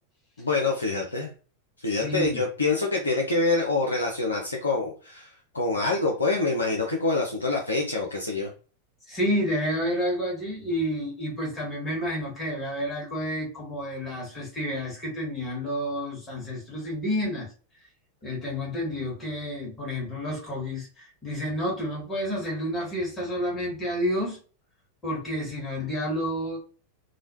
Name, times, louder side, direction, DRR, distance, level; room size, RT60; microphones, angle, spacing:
voice 1, 0.4-1.3 1.8-8.5, left 3 dB, 75° left, 0 dB, 0.5 m, -26 dB
voice 2, 1.9-2.4 9.1-17.5 18.2-24.4 25.0-26.6, equal, 15° left, -4 dB, 1.5 m, -30 dB
3.1 x 2.2 x 2.7 m, 0.38 s
figure-of-eight pair, 90°, 0 cm